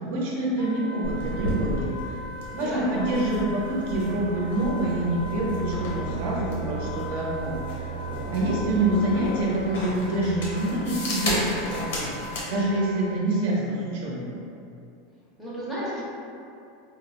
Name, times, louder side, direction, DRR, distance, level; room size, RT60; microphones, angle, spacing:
voice 1, 0.0-2.2 2.5-7.9 8.3-14.3, right 1 dB, 55° right, -4 dB, 0.6 m, -26 dB
Wind instrument woodwind instrument, 0.6-13.2, left 2 dB, 50° left, 0.4 m, -40 dB
sound 1, 1.0-12.5, right 1 dB, 75° left, 0.8 m, -33 dB
voice 2, 2.6-3.1 15.4-16.1, equal, 5° left, -10 dB, 0.6 m, -33 dB
3.8 x 2.0 x 2.8 m, 2.6 s
supercardioid pair, 180°, 0 cm